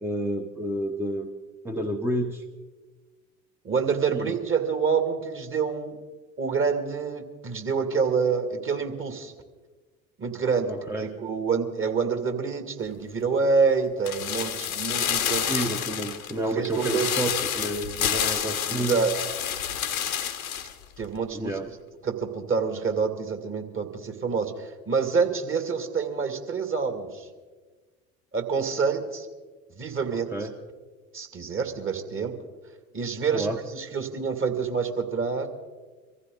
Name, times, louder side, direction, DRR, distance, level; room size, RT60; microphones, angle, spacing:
voice 1, 0.0-1.3 1.6-2.4 4.1-4.3 10.7-11.1 15.5-19.0 21.3-21.7 30.1-30.5 33.3-33.6, right 1 dB, 5° right, 4 dB, 1.1 m, -30 dB
voice 2, 3.6-6.0 6.4-9.3 10.2-10.7 11.0-15.7 16.5-17.1 18.7-19.1 21.0-21.5 22.0-27.3 28.3-29.3 29.8-30.3 31.1-32.3 32.9-35.5, right 5 dB, 30° right, 6 dB, 2.4 m, -27 dB
sound 1, 14.1-20.7 21.0-21.1, left 9 dB, 85° left, 1.3 m, -29 dB
24.5 x 15.0 x 3.9 m, 1.4 s
figure-of-eight pair, 70°, 41 cm